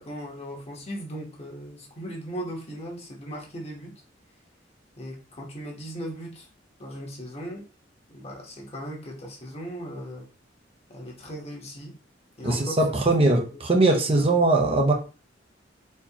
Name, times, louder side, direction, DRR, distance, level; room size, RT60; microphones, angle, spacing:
voice 1, 0.0-3.9 5.0-6.5 6.8-7.7 8.1-10.3 10.9-12.0 12.4-13.2 14.1-14.2, equal, 35° left, -1 dB, 1.2 m, -38 dB
voice 2, 12.4-14.9, right 2 dB, 30° right, 1 dB, 0.7 m, -21 dB
4.4 x 2.9 x 2.9 m, 0.34 s
head